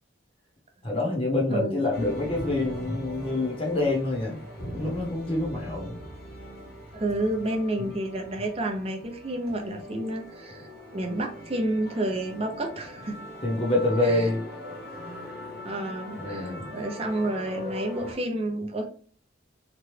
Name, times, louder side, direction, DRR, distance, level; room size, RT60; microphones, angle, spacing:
voice 1, 0.8-4.4 4.7-6.0 13.4-14.4 16.2-16.7, left 2 dB, 30° left, -3 dB, 0.9 m, -26 dB
voice 2, 1.5-1.9 6.9-10.7 10.9-13.2 14.0-14.3 15.6-18.9, right 1 dB, 30° right, 3 dB, 0.6 m, -30 dB
sound 1, 1.9-18.1, left 1 dB, 50° left, 1.0 m, -41 dB
3.0 x 2.3 x 3.2 m, 0.42 s
head